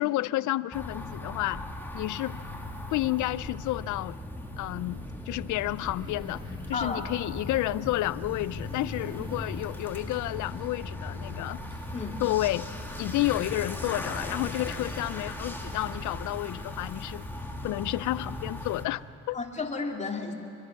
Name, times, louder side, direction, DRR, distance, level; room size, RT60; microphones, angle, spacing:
voice 1, 0.0-1.6 1.9-2.4 2.9-4.2 4.6-11.6 12.2-12.7 13.0-17.2 17.6-19.4, left 17 dB, 75° left, 19 dB, 0.4 m, -30 dB
sound 1, 0.7-18.9, left 2 dB, 5° left, 2.2 m, -38 dB
sound 2, 4.9-16.4, right 2 dB, 15° right, 1.1 m, -51 dB
voice 2, 6.7-7.1 11.9-12.3 19.3-20.3, left 4 dB, 25° left, 1 dB, 2.7 m, -33 dB
25.0 x 22.5 x 6.0 m, 2.8 s
cardioid pair, 90°, 30 cm